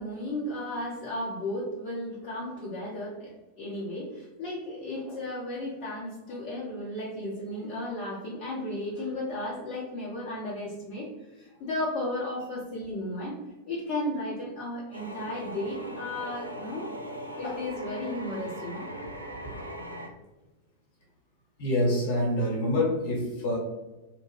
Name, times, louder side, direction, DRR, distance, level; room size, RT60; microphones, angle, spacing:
voice 1, 0.0-13.3 13.7-16.9 17.3-18.9 19.3-19.6, left 1 dB, 40° left, -7 dB, 0.8 m, -34 dB
sound 1, 14.9-20.1, equal, 85° right, 0.3 m, -39 dB
voice 2, 21.6-23.6, left 1 dB, 55° left, -3 dB, 1.1 m, -26 dB
2.9 x 2.1 x 3.1 m, 1.1 s
figure-of-eight pair, 90°, 0 cm